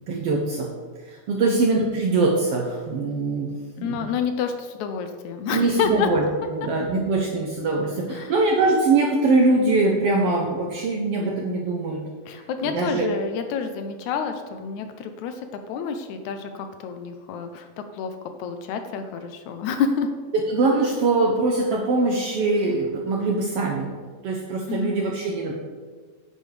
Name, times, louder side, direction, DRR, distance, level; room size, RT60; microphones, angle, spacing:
voice 1, 0.1-0.7 1.0-3.5 3.8-4.1 5.5-12.0 12.6-13.1 20.5-23.9 24.2-25.5, right 3 dB, 70° right, 0 dB, 1.5 m, -22 dB
voice 2, 3.8-6.1 8.1-8.3 12.3-17.7 17.9-20.1 24.7-25.0, left 6 dB, 80° left, 7 dB, 1.9 m, -29 dB
9.6 x 8.8 x 3.3 m, 1.5 s
omnidirectional pair, 3.6 m